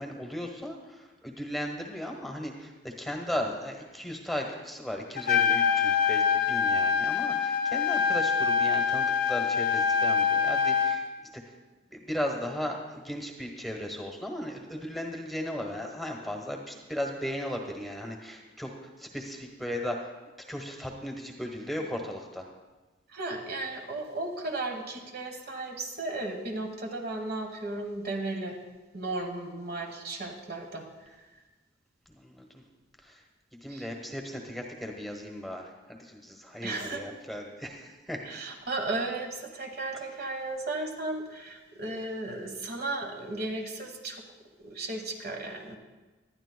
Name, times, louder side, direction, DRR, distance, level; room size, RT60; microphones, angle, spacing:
voice 1, 0.0-11.0 11.3-11.4 11.9-18.7 19.0-20.1 20.5-22.5 32.1-32.6 33.0-33.2 33.6-38.2, equal, ahead, 1 dB, 1.1 m, -36 dB
Trumpet, 5.2-11.0, left 6 dB, 50° left, 0.6 m, -25 dB
voice 2, 23.1-28.6 28.9-31.2 33.7-33.9 36.6-37.1 38.2-44.2 44.6-45.8, right 2 dB, 55° right, 3 dB, 1.3 m, -35 dB
19.0 x 11.5 x 2.2 m, 1.2 s
head